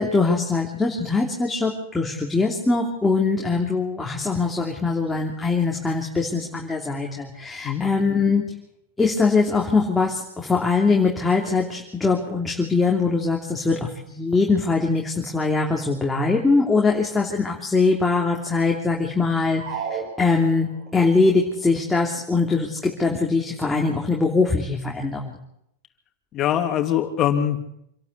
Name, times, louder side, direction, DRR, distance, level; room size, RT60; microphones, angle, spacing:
voice 1, 0.0-8.4 9.0-13.8 14.1-25.3, left 4 dB, 10° left, -1 dB, 3.1 m, -22 dB
sound 1, 19.5-21.0, right 6 dB, 65° right, 3.4 m, -33 dB
voice 2, 26.3-27.7, left 10 dB, 35° left, 6 dB, 2.7 m, -23 dB
26.5 x 12.0 x 8.3 m, 0.77 s
hypercardioid pair, 115°, 0 cm